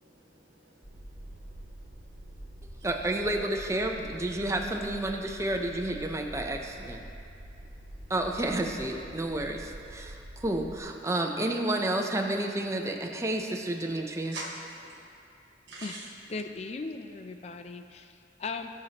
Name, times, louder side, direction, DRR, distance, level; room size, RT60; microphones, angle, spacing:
voice 1, 0.0-2.9 7.5-8.1 14.3-15.1 15.7-16.1, right 2 dB, 70° right, -5 dB, 1.3 m, -46 dB
sound 1, 0.8-10.8, right 1 dB, 40° right, 2.1 m, -46 dB
voice 2, 2.8-7.0 8.1-14.4, right 1 dB, 15° right, 2 dB, 0.6 m, -30 dB
voice 3, 16.3-18.7, left 4 dB, 35° left, 7 dB, 0.4 m, -38 dB
15.5 x 5.7 x 2.9 m, 2.6 s
head